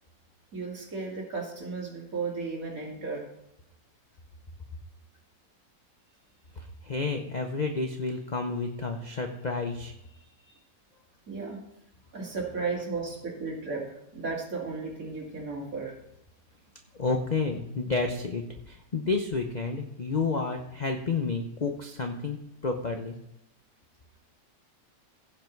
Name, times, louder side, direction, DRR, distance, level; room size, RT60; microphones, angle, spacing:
voice 1, 0.5-3.3 11.3-11.6 12.1-15.9, right 4 dB, 45° right, -1 dB, 2.9 m, -34 dB
voice 2, 6.6-9.9 17.0-23.2, left 4 dB, 50° left, 4 dB, 0.5 m, -30 dB
16.0 x 5.6 x 4.6 m, 0.82 s
omnidirectional pair, 2.0 m